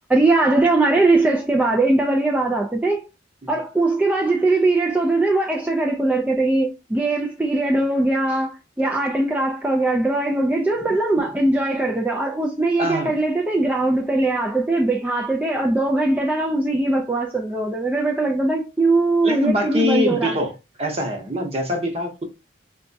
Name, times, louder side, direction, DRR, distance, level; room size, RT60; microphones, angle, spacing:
voice 1, 0.1-3.1 3.5-20.3, right 2 dB, 10° right, 0.3 m, -20 dB
voice 2, 12.8-13.2 19.2-22.2, left 1 dB, 35° right, 0.8 m, -24 dB
4.1 x 2.2 x 2.6 m
head